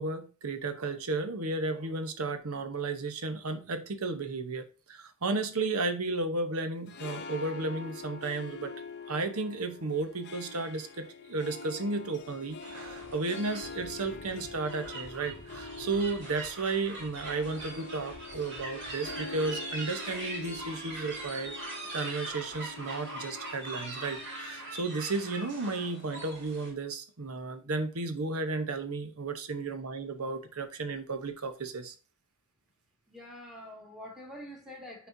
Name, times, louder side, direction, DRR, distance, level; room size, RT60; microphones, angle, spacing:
voice 1, 0.0-8.7 9.1-31.9, right 3 dB, 90° right, 1.0 m, -33 dB
Harp, 6.7-26.1, left 4 dB, 50° left, 0.7 m, -45 dB
sound 1, 12.6-26.7, right 2 dB, 55° right, 2.5 m, -42 dB
voice 2, 33.1-35.1, left 1 dB, ahead, 1.8 m, -46 dB
9.3 x 4.4 x 2.7 m
head